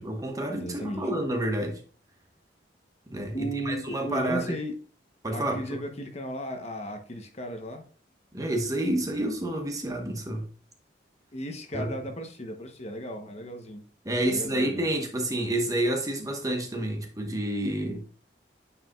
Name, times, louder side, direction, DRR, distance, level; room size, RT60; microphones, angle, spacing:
voice 1, 0.0-1.8 3.1-4.5 5.2-5.8 8.3-10.5 11.7-11.9 14.0-18.1, right 1 dB, 20° right, 1.0 m, -29 dB
voice 2, 0.6-1.1 3.3-4.7 5.3-7.8 11.3-13.8 14.3-14.9, equal, 40° left, 0.9 m, -35 dB
9.1 x 4.9 x 2.4 m
head